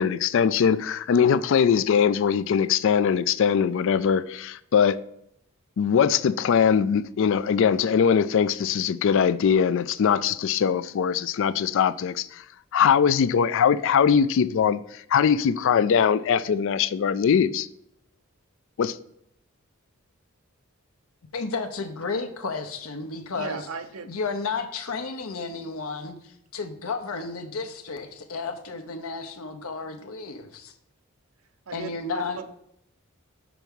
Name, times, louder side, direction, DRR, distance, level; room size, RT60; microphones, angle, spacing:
voice 1, 0.0-5.0 5.8-12.4 12.7-14.8 15.1-17.7 18.8-18.9, left 7 dB, 60° left, 0.3 m, -21 dB
voice 2, 21.3-23.6 24.0-30.7 31.7-32.4, left 4 dB, 75° left, 0.9 m, -32 dB
voice 3, 23.3-24.1 31.7-32.5, right 5 dB, 75° right, 0.7 m, -37 dB
6.0 x 4.6 x 5.3 m
head